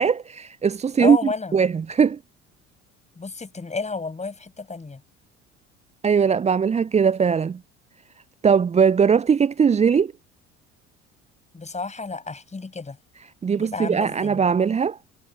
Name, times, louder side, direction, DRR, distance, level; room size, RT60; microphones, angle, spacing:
voice 1, 0.0-1.2 1.5-2.2 6.0-7.6 8.4-10.1 13.4-15.0, right 6 dB, 20° right, 0.7 m, -20 dB
voice 2, 1.0-1.6 3.2-5.0 11.5-13.0 13.6-14.4, left 4 dB, 20° left, 7.0 m, -31 dB
figure-of-eight pair, 60°, 37 cm